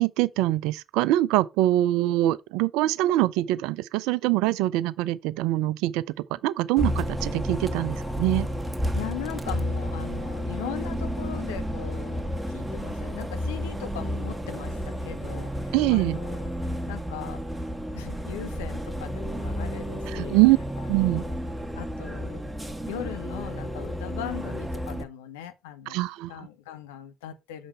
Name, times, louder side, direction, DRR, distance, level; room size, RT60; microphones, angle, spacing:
voice 1, 0.0-6.0 6.3-8.5 15.7-16.2 20.1-20.6 20.9-21.2 25.9-26.3, right 16 dB, 75° right, 0.4 m, -23 dB
Bus, 6.8-25.0, equal, 10° right, 1.4 m, -31 dB
voice 2, 8.9-17.4 17.9-20.4 21.0-21.4 21.7-27.7, left 11 dB, 80° left, 0.7 m, -39 dB
6.8 x 5.2 x 4.3 m
hypercardioid pair, 50°, 0 cm